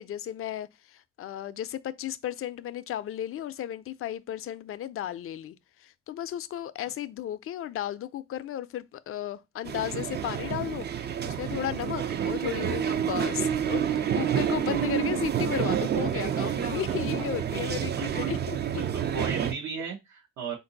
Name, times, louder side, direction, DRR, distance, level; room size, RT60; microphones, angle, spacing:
voice 1, 0.0-10.9 11.3-18.8, left 11 dB, 50° left, 0.4 m, -34 dB
sound 1, 9.6-19.5, right 9 dB, 35° right, 0.4 m, -29 dB
voice 2, 16.9-17.2 17.9-18.0 18.7-20.6, right 5 dB, 70° right, 0.9 m, -36 dB
3.9 x 2.6 x 3.8 m
cardioid pair, 90°, 30 cm